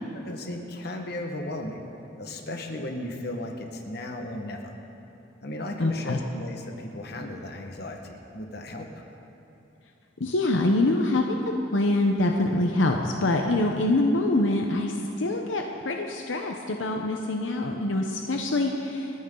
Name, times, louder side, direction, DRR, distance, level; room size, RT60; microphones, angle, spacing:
voice 1, 0.1-1.8 2.2-4.7 5.4-9.0, left 1 dB, 55° left, 3 dB, 1.4 m, -35 dB
voice 2, 5.8-6.2 10.2-11.4 11.7-19.1, left 2 dB, 85° left, 2 dB, 0.9 m, -25 dB
28.5 x 9.8 x 3.9 m, 2.9 s
head